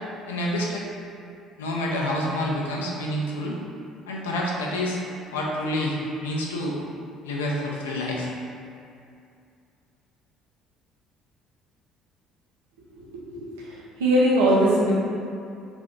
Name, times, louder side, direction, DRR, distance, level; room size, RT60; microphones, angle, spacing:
voice 1, 0.3-0.9 1.6-3.6 4.1-5.0 5.3-6.0 6.2-6.7 7.2-8.3, left 1 dB, 75° left, -2 dB, 0.3 m, -28 dB
voice 2, 12.9-14.9, right 1 dB, 70° right, -6 dB, 0.6 m, -22 dB
2.8 x 2.4 x 3.5 m, 2.4 s
figure-of-eight pair, 55°, 0 cm